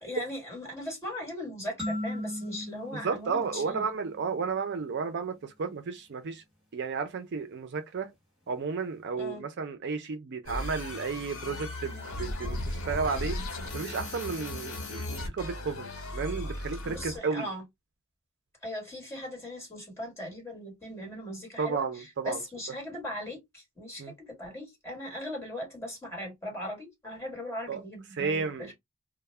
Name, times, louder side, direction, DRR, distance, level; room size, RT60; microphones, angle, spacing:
voice 1, 0.0-3.8 9.1-9.4 16.8-17.6 18.6-28.7, left 1 dB, 15° left, 1.4 m, -39 dB
sound 1, 1.8-4.4, left 1 dB, 5° right, 1.2 m, -38 dB
voice 2, 3.0-6.4 6.7-8.1 8.5-13.4 13.7-17.5 21.6-22.4 24.0-24.1 27.7-27.8 28.1-28.7, right 5 dB, 55° right, 0.4 m, -33 dB
sound 2, 10.5-17.2, left 1 dB, 85° left, 1.0 m, -36 dB
2.2 x 2.0 x 3.2 m
head